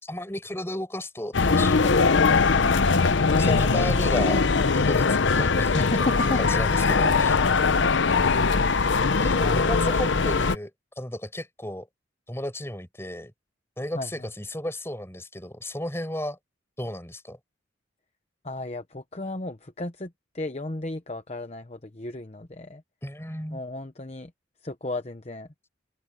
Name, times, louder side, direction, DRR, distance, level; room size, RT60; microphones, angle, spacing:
voice 1, 0.0-2.4 3.4-6.0 6.4-7.3 9.2-10.7 11.0-11.9 12.3-13.3 13.8-16.4 16.8-17.4 23.0-23.6, left 1 dB, 15° left, 5.8 m, -34 dB
sound 1, 1.3-10.6, left 4 dB, 75° left, 0.8 m, -21 dB
voice 2, 3.4-4.0 5.7-6.4 9.4-9.7 13.9-14.3 18.4-22.8 23.5-24.3 24.6-25.5, left 2 dB, 35° left, 0.9 m, -34 dB
head